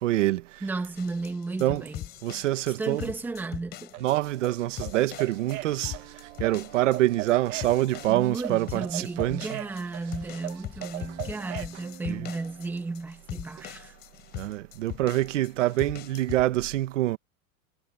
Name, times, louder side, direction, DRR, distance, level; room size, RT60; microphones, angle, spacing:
voice 1, 0.0-0.6 1.6-1.8 2.2-3.1 4.0-5.9 6.4-9.6 12.1-12.3 14.3-17.2, right 15 dB, 60° right, 1.5 m, -26 dB
voice 2, 0.6-2.1 2.8-3.9 8.1-13.9, right 3 dB, 5° right, 1.6 m, -34 dB
sound 1, 1.0-16.5, left 14 dB, 25° left, 5.7 m, -42 dB
sound 2, 3.9-11.8, right 15 dB, 80° right, 0.9 m, -39 dB
Piano, 5.8-12.7, right 19 dB, 30° right, 2.2 m, -51 dB
supercardioid pair, 180°, 42 cm